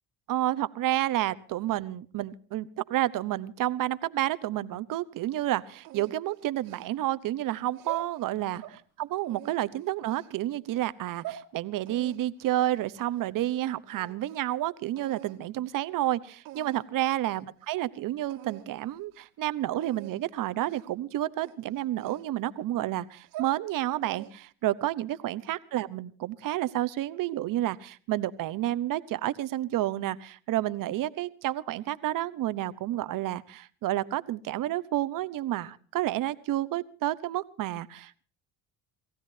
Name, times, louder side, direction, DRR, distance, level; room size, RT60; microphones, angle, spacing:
voice 1, 0.3-38.2, right 14 dB, 65° right, 15 dB, 1.0 m, -30 dB
sound 1, 5.8-7.2 7.7-8.8 9.2-10.3 10.9-11.5 11.9-13.6 13.9-14.5 15.0-15.4 16.0-16.1 16.4-17.0 17.4-17.5 17.7-17.9 18.3-18.7 19.0-19.3 19.8-20.2 20.7-21.0 21.4-22.6 23.1-23.6 24.0-24.5, right 13 dB, 85° right, 2.1 m, -45 dB
28.5 x 15.5 x 2.8 m, 0.40 s
supercardioid pair, 75°, 34 cm